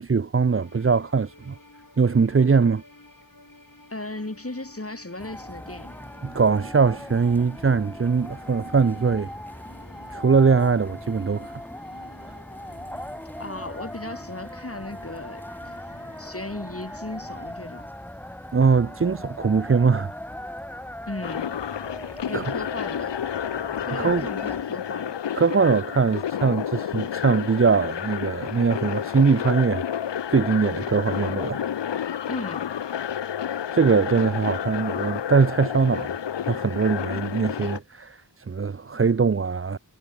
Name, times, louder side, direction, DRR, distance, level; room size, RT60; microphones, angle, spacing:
voice 1, 0.0-1.6 2.0-2.8 6.2-9.3 10.1-11.6 18.5-20.1 22.3-22.6 23.9-24.3 25.3-29.8 30.3-31.6 33.7-39.8, right 5 dB, 30° right, 0.5 m, -22 dB
sound 1, 0.6-17.5, left 2 dB, 45° left, 6.8 m, -52 dB
voice 2, 3.9-6.1 13.4-15.4 16.2-17.9 21.1-21.5 22.3-23.2 23.9-25.2 32.2-32.7, left 2 dB, 30° left, 2.7 m, -36 dB
sound 2, 5.2-24.6, left 1 dB, 5° left, 0.7 m, -39 dB
sound 3, 21.2-37.8, left 9 dB, 70° left, 0.6 m, -30 dB
wide cardioid pair, 40°, 45 cm